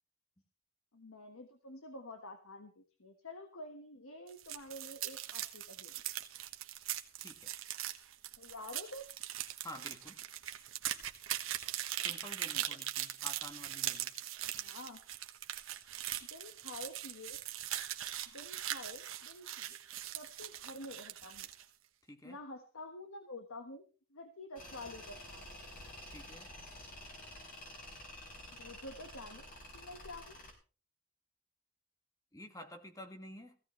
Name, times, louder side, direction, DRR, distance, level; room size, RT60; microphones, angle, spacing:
voice 1, 0.9-5.9 8.4-9.1 12.5-12.6 14.4-15.0 16.3-17.4 18.3-19.8 20.1-21.5 22.2-23.8 24.1-25.5 28.6-29.5 29.7-30.4, left 1 dB, 80° left, 1.4 m, -49 dB
sound 1, 4.3-21.6, right 12 dB, 70° right, 1.2 m, -41 dB
voice 2, 7.2-7.5 9.6-10.2 12.0-14.1 22.1-22.4 26.1-26.5 32.3-33.5, left 1 dB, 15° left, 1.6 m, -50 dB
Tools, 24.6-30.5, left 1 dB, 45° left, 4.9 m, -50 dB
17.0 x 16.0 x 3.1 m
head